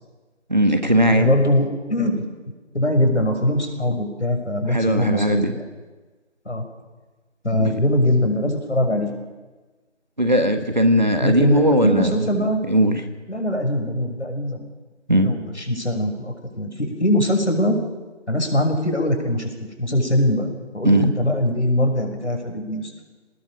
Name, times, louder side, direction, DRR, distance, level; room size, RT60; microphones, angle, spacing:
voice 1, 0.5-1.3 4.7-5.5 7.6-7.7 10.2-12.3 12.7-13.0 15.1-15.3 20.8-21.1, equal, 40° right, 7 dB, 1.5 m, -18 dB
voice 2, 1.1-2.2 2.7-5.7 6.4-6.6 7.4-9.1 11.2-12.6 13.3-14.6 15.2-17.8 18.3-20.5 20.7-22.9, left 1 dB, 70° left, 4 dB, 6.0 m, -22 dB
24.5 x 19.5 x 6.7 m, 1.3 s
figure-of-eight pair, 170°, 36 cm